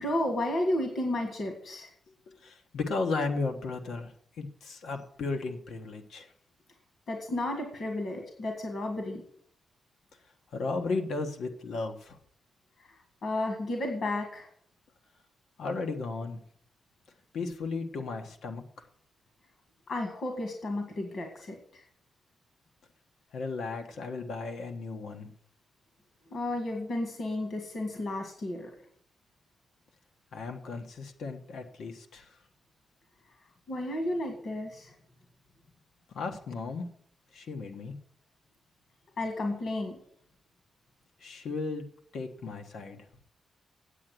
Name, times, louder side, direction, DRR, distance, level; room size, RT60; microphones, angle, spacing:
voice 1, 0.0-1.9 7.1-9.2 13.2-14.5 19.9-21.8 26.3-28.7 33.7-34.9 39.2-40.0, left 1 dB, 60° left, 3 dB, 1.9 m, -32 dB
voice 2, 2.4-4.1 4.4-6.3 10.5-12.2 15.6-16.4 17.3-18.6 23.3-25.3 30.3-32.2 36.1-36.9 37.3-37.9 41.2-41.8 42.1-43.0, left 3 dB, 85° left, 4 dB, 1.3 m, -35 dB
8.4 x 8.1 x 7.6 m, 0.65 s
wide cardioid pair, 150°, 0 cm